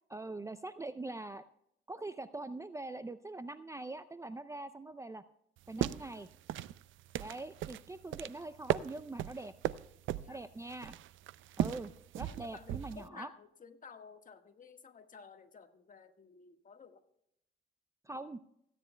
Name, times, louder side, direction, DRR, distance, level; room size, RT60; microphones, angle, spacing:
voice 1, 0.1-1.4 1.9-5.2 5.7-6.3 7.2-9.5 10.3-11.0 11.6-13.3 18.1-18.4, right 2 dB, 15° right, 13 dB, 0.4 m, -43 dB
sound 1, 5.6-13.1, right 13 dB, 80° right, 0.5 m, -38 dB
voice 2, 12.2-17.0, left 5 dB, 40° left, 7 dB, 1.5 m, -54 dB
27.5 x 10.0 x 2.2 m, 0.76 s
cardioid pair, 90°, 20 cm